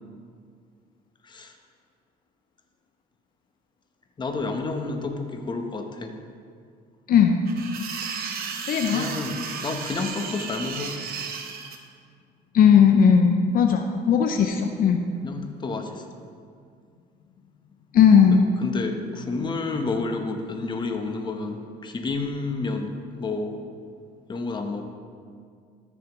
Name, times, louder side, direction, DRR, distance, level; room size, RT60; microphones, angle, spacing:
voice 1, 1.2-1.5 4.2-6.1 8.9-11.0 15.2-16.0 18.6-23.6 24.3-24.8, left 3 dB, 25° left, 4 dB, 0.9 m, -30 dB
sound 1, 7.5-11.8, right 6 dB, 60° right, 1.0 m, -34 dB
voice 2, 8.7-9.1 12.5-15.0 17.9-18.4, left 7 dB, 60° left, 4 dB, 0.6 m, -17 dB
13.5 x 7.1 x 3.1 m, 2.2 s
cardioid pair, 110°, 17 cm